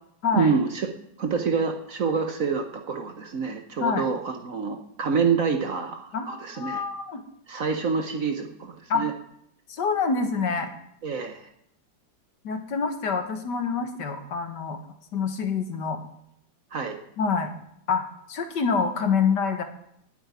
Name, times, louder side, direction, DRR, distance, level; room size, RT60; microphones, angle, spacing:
voice 1, 0.3-0.9 1.2-6.8 7.5-9.1 11.0-11.5 16.7-17.0, right 5 dB, 50° right, 5 dB, 1.2 m, -27 dB
voice 2, 6.1-7.2 8.9-9.1 9.7-10.7 12.4-14.8 15.1-16.0 17.2-17.5 17.9-19.6, left 5 dB, 65° left, 7 dB, 1.8 m, -26 dB
9.8 x 8.0 x 9.5 m, 0.73 s
omnidirectional pair, 2.1 m